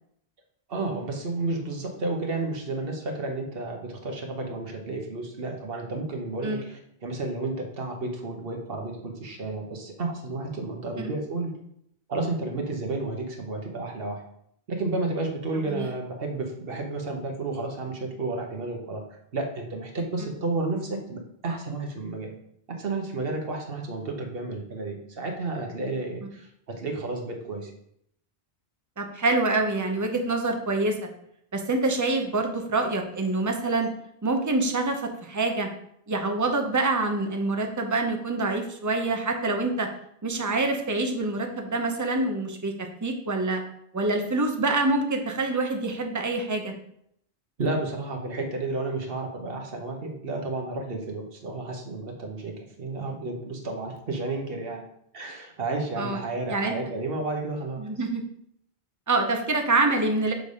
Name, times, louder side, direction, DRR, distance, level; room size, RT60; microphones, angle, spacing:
voice 1, 0.7-11.6 12.1-14.2 14.7-22.3 22.7-27.7 47.6-58.0, right 2 dB, 65° right, 2 dB, 1.3 m, -32 dB
voice 2, 29.0-31.1 31.5-33.9 34.2-35.7 36.1-39.9 40.2-43.6 43.9-46.7 56.0-56.2 56.5-56.8 57.8-58.2 59.1-60.3, right 2 dB, 20° right, 4 dB, 0.7 m, -26 dB
6.6 x 3.3 x 5.4 m, 0.73 s
omnidirectional pair, 1.1 m